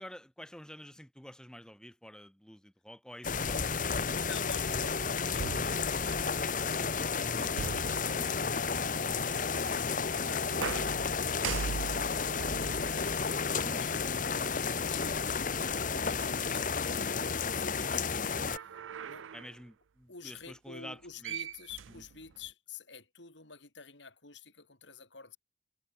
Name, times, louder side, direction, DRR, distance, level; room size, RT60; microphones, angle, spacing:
voice 1, 0.0-4.2 7.1-7.7 13.6-13.8 17.9-18.4 19.3-21.4, equal, 5° left, 1.7 m, -49 dB
sound 1, 3.2-18.6, left 5 dB, 45° left, 1.1 m, -32 dB
voice 2, 4.2-6.3 7.2-18.1 18.5-18.6 19.0-19.3 20.1-25.4, left 4 dB, 70° left, 4.5 m, -50 dB
sound 2, 5.4-6.5 7.6-8.7 10.5-14.1 14.9-15.0 18.3-19.6 20.9-21.0 21.2-22.5, right 7 dB, 90° right, 0.4 m, -41 dB
head